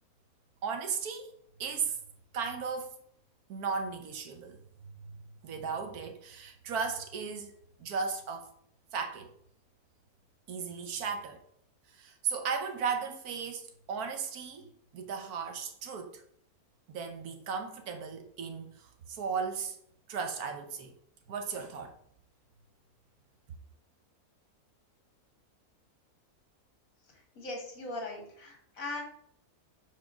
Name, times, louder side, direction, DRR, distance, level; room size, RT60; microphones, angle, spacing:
voice 1, 0.6-2.0 2.3-3.0 3.5-5.1 5.4-7.5 7.8-8.5 8.9-9.3 10.5-11.4 11.9-16.2 16.9-19.8 20.1-20.9 21.3-22.0, right 5 dB, 80° right, 1.4 m, -36 dB
voice 2, 27.1-29.0, left 2 dB, 65° left, 2.0 m, -40 dB
4.8 x 4.2 x 5.8 m
omnidirectional pair, 1.6 m